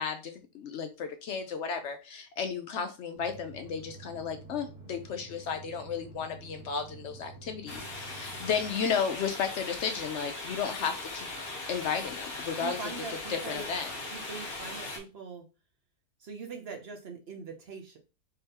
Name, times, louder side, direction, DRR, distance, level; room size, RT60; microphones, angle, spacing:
voice 1, 0.0-11.3 11.7-12.9 13.3-13.9, left 6 dB, 75° left, 7 dB, 0.6 m, -33 dB
sound 1, 3.1-8.7, right 3 dB, 5° right, 1.0 m, -49 dB
sound 2, 7.7-15.0, left 2 dB, 40° left, 1.2 m, -39 dB
voice 2, 12.6-13.7 14.1-15.4 16.2-18.0, right 5 dB, 55° right, 4 dB, 0.7 m, -42 dB
3.8 x 3.4 x 2.8 m, 0.30 s
omnidirectional pair, 1.7 m